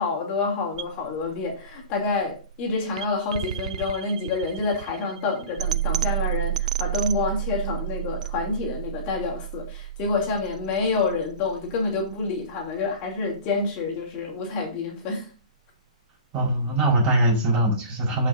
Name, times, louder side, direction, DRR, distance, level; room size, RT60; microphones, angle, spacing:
voice 1, 0.0-15.3, left 3 dB, 35° left, 3.0 m, -28 dB
sound 1, 0.7-12.8, right 13 dB, 70° right, 0.7 m, -32 dB
voice 2, 16.3-18.3, right 1 dB, 25° right, 4.7 m, -21 dB
13.5 x 5.8 x 2.7 m
hypercardioid pair, 150°, 4 cm